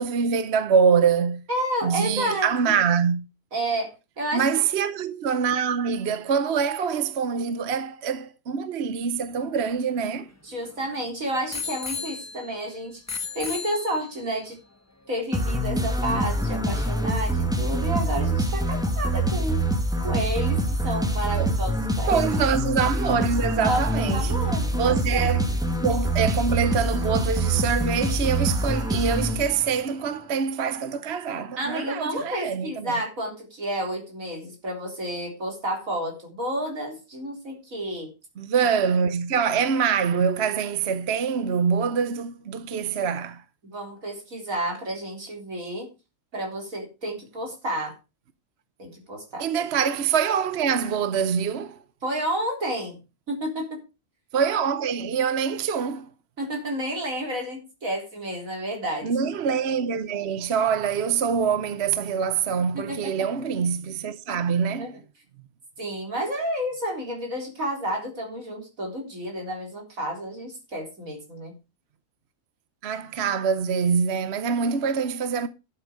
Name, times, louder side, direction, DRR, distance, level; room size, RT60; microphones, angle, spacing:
voice 1, 0.0-1.4 1.8-3.2 4.3-10.3 21.4-21.5 22.1-24.3 24.7-33.0 38.4-43.4 49.4-51.8 54.3-56.1 59.0-65.0 72.8-75.5, right 6 dB, 55° right, 1.0 m, -25 dB
voice 2, 1.5-2.5 3.5-4.5 10.4-13.0 13.3-14.6 15.1-19.6 20.0-22.2 23.6-25.3 31.6-38.1 43.6-45.9 46.3-48.0 48.8-49.5 52.0-53.0 53.3-53.8 56.4-59.1 62.7-63.3 64.8-64.9 65.8-71.5, right 1 dB, 75° right, 4.2 m, -30 dB
Bicycle bell, 9.2-10.9 11.5-12.7 13.1-14.3 15.1-15.2, left 5 dB, 15° left, 1.0 m, -36 dB
sound 1, 15.3-29.9, right 1 dB, 5° right, 1.5 m, -25 dB
11.5 x 7.9 x 5.0 m
omnidirectional pair, 1.4 m